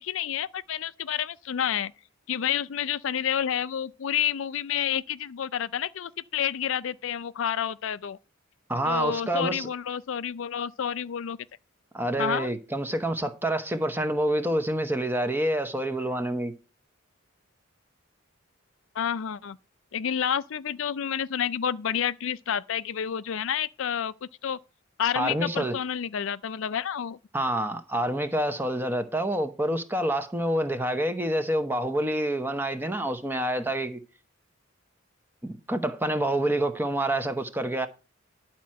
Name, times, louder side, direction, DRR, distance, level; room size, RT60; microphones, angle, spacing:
voice 1, 0.0-1.9 2.3-8.2 8.9-11.4 12.2-12.5 18.9-19.6 19.9-24.6 25.0-27.2, left 9 dB, 65° left, 0.4 m, -29 dB
voice 2, 8.7-9.7 11.9-16.5 25.1-25.8 27.3-34.0 35.4-37.9, right 1 dB, 10° right, 0.9 m, -27 dB
11.0 x 4.4 x 7.6 m
head